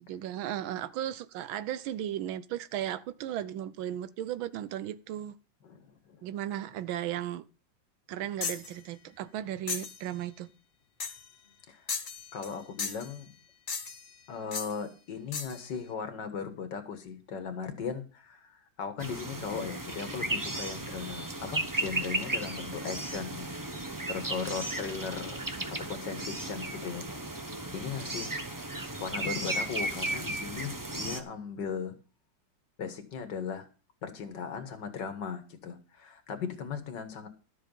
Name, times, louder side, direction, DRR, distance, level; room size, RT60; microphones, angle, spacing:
voice 1, 0.1-5.3 6.2-7.5 8.1-10.5, right 11 dB, 90° right, 1.5 m, -35 dB
voice 2, 5.6-6.2 11.7-11.8 12.3-13.3 14.3-25.4 25.7-27.1 27.4-27.5 27.7-28.4 29.0-32.0 32.8-33.7 34.0-37.3, left 6 dB, 65° left, 2.1 m, -38 dB
sound 1, 8.4-8.7 9.7-10.0 11.0-11.3 11.9-12.5 12.8-13.1 13.7-14.1 14.5-14.7 15.3-15.6, left 5 dB, 35° left, 1.1 m, -35 dB
sound 2, 19.0-31.2, right 2 dB, 20° right, 0.5 m, -35 dB
12.5 x 7.3 x 5.3 m
omnidirectional pair, 2.1 m